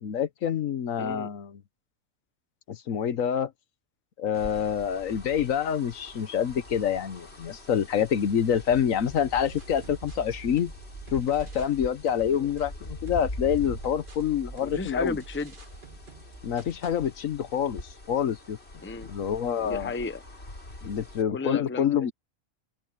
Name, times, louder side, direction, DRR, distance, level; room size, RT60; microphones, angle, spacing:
voice 1, 0.0-1.6 2.7-3.5 4.2-10.7 11.1-15.2 16.4-17.8 18.1-18.6 19.1-19.9 20.8-22.1, left 8 dB, 75° left, 1.3 m, -27 dB
voice 2, 1.0-1.3 12.3-12.5 14.6-15.5 18.8-19.1 19.6-20.2 21.3-22.1, left 3 dB, 10° left, 0.7 m, -34 dB
sound 1, 4.3-21.2, left 2 dB, 50° left, 4.3 m, -43 dB
sound 2, 9.1-11.8 12.1-17.1, right 2 dB, 40° right, 2.0 m, -47 dB
omnidirectional pair, 1.4 m